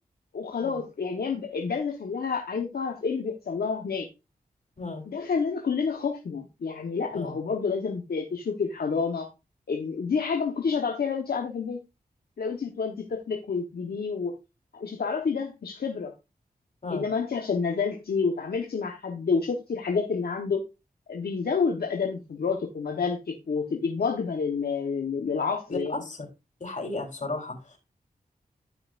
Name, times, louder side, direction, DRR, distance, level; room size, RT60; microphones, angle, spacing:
voice 1, 0.3-4.1 5.1-9.3 9.7-11.8 12.4-14.4 14.7-16.1 16.9-20.6 21.1-26.0, left 5 dB, 75° left, 2 dB, 1.2 m, -29 dB
voice 2, 25.7-26.2 26.6-27.8, left 2 dB, 50° left, 3 dB, 3.8 m, -34 dB
13.0 x 5.8 x 2.5 m, 0.27 s
cardioid pair, 50°, 16 cm